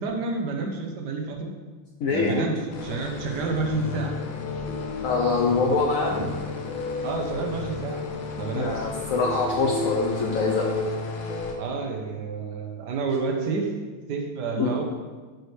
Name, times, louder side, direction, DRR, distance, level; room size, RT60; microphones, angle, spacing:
voice 1, 0.0-1.5 2.1-4.1 6.2-6.3 7.0-8.0 8.3-8.8 11.6-13.7 14.1-14.8, right 3 dB, 60° right, 3 dB, 1.2 m, -29 dB
voice 2, 2.0-2.5 5.0-6.2 8.5-10.7 14.5-14.7, left 4 dB, 90° left, 0 dB, 0.7 m, -24 dB
sound 1, 2.7-11.5, left 3 dB, 75° left, 1.6 m, -32 dB
10.5 x 4.7 x 3.2 m, 1.4 s
omnidirectional pair, 2.3 m